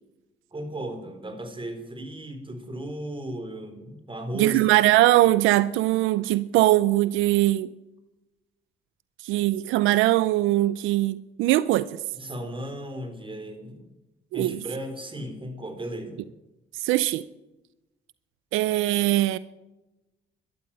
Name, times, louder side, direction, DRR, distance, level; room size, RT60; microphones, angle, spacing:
voice 1, 0.5-4.6 12.2-13.9 14.3-16.2, right 1 dB, 25° right, 7 dB, 4.0 m, -35 dB
voice 2, 4.3-7.7 9.2-12.0 14.3-14.6 16.8-17.2 18.5-19.4, right 16 dB, 90° right, 17 dB, 0.5 m, -21 dB
13.0 x 12.0 x 8.9 m, 1.0 s
supercardioid pair, 70°, 20 cm